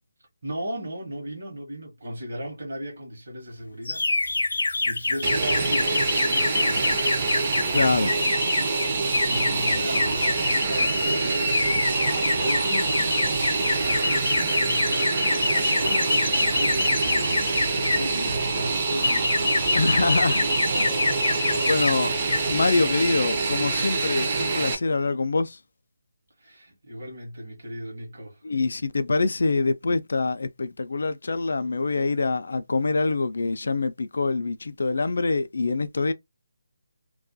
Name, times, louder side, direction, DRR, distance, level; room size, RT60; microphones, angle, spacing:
voice 1, 0.4-4.0 4.5-7.4 8.9-11.3 11.7-13.5 14.1-15.0 15.3-19.7 20.6-22.1 26.4-28.4, equal, 45° right, 0.9 m, -36 dB
sound 1, 3.9-18.1 18.7-21.9 22.2-22.5, left 3 dB, 80° left, 0.7 m, -26 dB
Fixed-wing aircraft airplane, 5.2-24.7, right 4 dB, 25° right, 0.4 m, -26 dB
voice 2, 7.7-8.3 19.7-20.5 20.7-20.8 21.7-22.1 22.5-25.6 28.4-36.1, left 3 dB, 60° left, 0.3 m, -25 dB
Bowed string instrument, 10.7-14.5, right 2 dB, 85° right, 0.7 m, -36 dB
2.3 x 2.1 x 2.5 m
hypercardioid pair, 180°, 0 cm